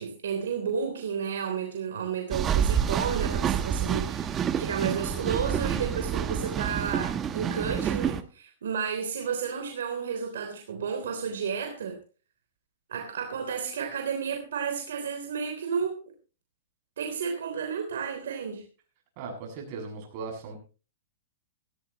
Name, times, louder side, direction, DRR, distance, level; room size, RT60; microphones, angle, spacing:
voice 1, 0.0-12.0 12.9-16.0 17.0-18.6, right 6 dB, 80° right, 4 dB, 3.4 m, -32 dB
sound 1, 2.3-8.2, right 8 dB, 25° right, 1.0 m, -28 dB
voice 2, 19.2-20.6, right 4 dB, 45° right, 2 dB, 7.2 m, -38 dB
17.0 x 16.0 x 3.0 m, 0.35 s
hypercardioid pair, 135°, 0 cm